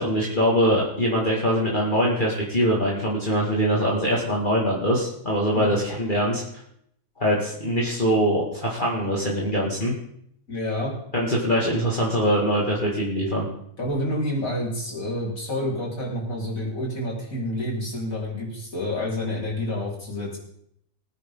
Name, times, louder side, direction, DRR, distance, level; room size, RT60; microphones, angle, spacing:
voice 1, 0.0-6.6 7.2-9.9 11.1-13.5, equal, 30° left, -4 dB, 2.3 m, -23 dB
voice 2, 10.5-10.9 13.8-20.4, left 1 dB, 60° left, -5 dB, 4.9 m, -28 dB
20.5 x 9.3 x 3.8 m, 0.71 s
omnidirectional pair, 1.6 m